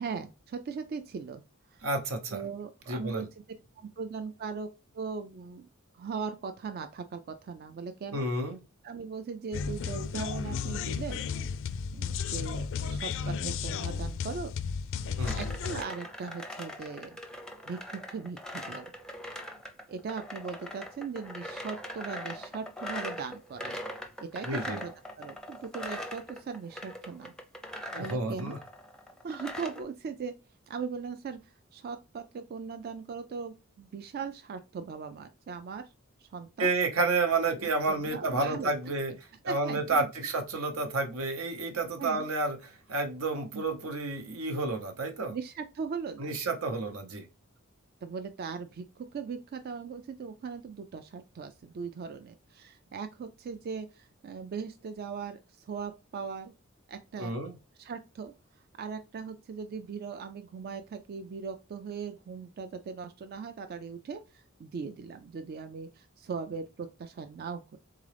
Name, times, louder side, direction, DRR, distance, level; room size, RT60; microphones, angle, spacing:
voice 1, 0.0-1.4 1.7-1.9 2.3-3.3 3.8-4.7 4.9-5.7 5.9-8.3 8.8-11.2 11.9-14.5 15.3-17.2 17.7-18.9 19.9-23.8 24.2-27.3 28.0-28.6 29.2-30.3 30.7-35.9 36.2-36.7 37.6-38.9 39.5-40.1 42.0-42.3 43.5-43.6 45.3-46.3 48.0-56.5 56.9-57.4 57.8-58.3 58.8-67.8, right 5 dB, 50° right, 8 dB, 0.3 m, -39 dB
voice 2, 1.8-2.4 2.9-3.3 8.1-8.6 15.2-15.4 24.5-24.8 27.9-28.6 36.6-39.1 39.4-45.3 46.2-47.3 57.2-57.5, right 3 dB, 85° right, 6 dB, 0.9 m, -30 dB
sound 1, 9.5-15.8, left 6 dB, 65° left, 0.3 m, -33 dB
sound 2, 15.2-29.8, left 1 dB, 5° left, 0.5 m, -41 dB
3.7 x 3.6 x 3.3 m, 0.29 s
head